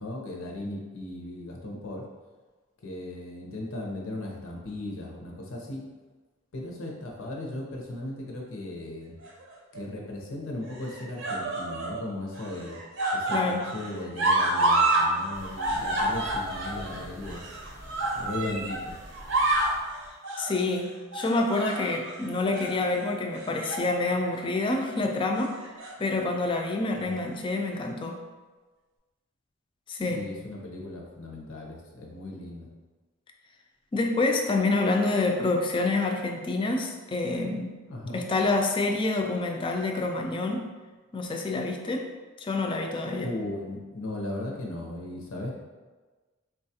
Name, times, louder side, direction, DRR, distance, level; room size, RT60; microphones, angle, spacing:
voice 1, 0.0-2.0 2.8-5.8 6.5-9.2 9.7-12.8 13.1-17.6 18.1-19.0 27.0-27.2 30.1-32.7 37.9-38.2 43.2-45.5, left 1 dB, 90° left, -1 dB, 0.7 m, -37 dB
sound 1, 9.2-9.8 10.7-12.0 12.3-15.1 15.3-18.8 19.1-19.8 20.2-20.5 21.1-22.1 22.5-22.7 23.4-23.9 24.2-24.4 25.5-26.2 27.1-27.2, right 2 dB, 65° right, 0.6 m, -28 dB
voice 2, 13.3-13.6 20.4-25.5 26.0-28.2 29.9-30.3 33.9-37.8 38.1-40.7 41.1-42.1 42.4-43.3, left 2 dB, 25° left, 3 dB, 0.3 m, -27 dB
sound 2, 15.3-20.2, equal, 15° right, 0.6 m, -46 dB
4.0 x 2.3 x 2.7 m, 1.3 s
head